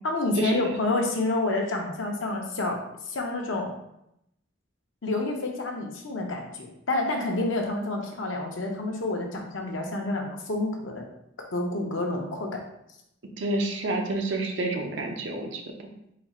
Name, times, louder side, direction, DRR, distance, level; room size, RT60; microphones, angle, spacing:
voice 1, 0.0-3.7 5.0-11.0 11.4-12.6, left 2 dB, 90° left, 1 dB, 0.8 m, -29 dB
voice 2, 13.4-15.6, right 2 dB, 70° right, 2 dB, 0.7 m, -28 dB
4.1 x 2.4 x 4.2 m, 0.80 s
head